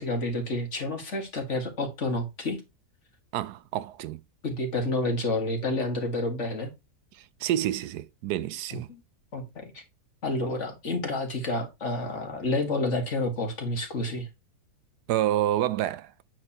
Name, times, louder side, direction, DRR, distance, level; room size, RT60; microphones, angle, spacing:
voice 1, 0.0-2.6 4.4-6.7 8.7-9.0 9.3-9.8 10.2-14.3, left 2 dB, 45° left, 2.2 m, -29 dB
voice 2, 3.3-4.2 7.1-8.9 15.1-16.1, right 12 dB, 80° right, 1.1 m, -28 dB
8.8 x 6.6 x 2.9 m
omnidirectional pair, 1.7 m